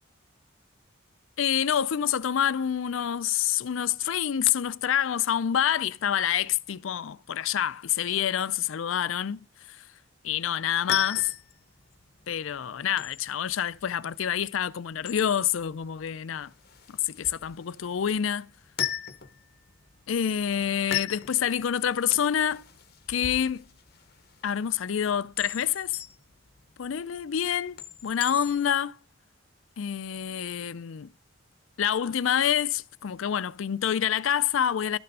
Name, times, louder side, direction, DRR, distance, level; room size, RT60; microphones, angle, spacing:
voice 1, 1.4-9.4 9.7-9.8 10.2-11.3 12.3-16.5 16.9-18.5 20.1-22.6 23.1-23.7 24.4-26.0 26.8-29.0 29.8-31.1 31.8-35.0, left 9 dB, 80° left, 0.4 m, -27 dB
sound 1, 10.6-28.9, left 11 dB, 50° left, 0.9 m, -39 dB
12.5 x 6.7 x 5.4 m
head